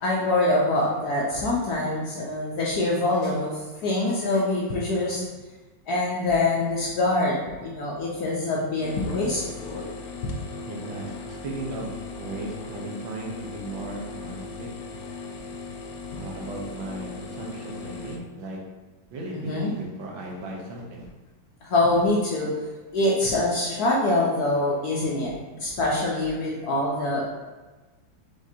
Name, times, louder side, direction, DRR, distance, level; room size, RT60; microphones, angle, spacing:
voice 1, 0.0-5.2 5.9-9.9 10.2-10.3 16.1-16.2 19.3-19.7 21.6-22.5 22.9-27.2, left 2 dB, 65° left, -4 dB, 1.0 m, -25 dB
sound 1, 8.8-18.2, left 4 dB, 90° left, 1.4 m, -38 dB
voice 2, 10.7-14.7 16.1-18.6 19.1-21.1, right 2 dB, 75° right, -1 dB, 1.5 m, -36 dB
4.9 x 3.8 x 2.7 m, 1.2 s
omnidirectional pair, 2.2 m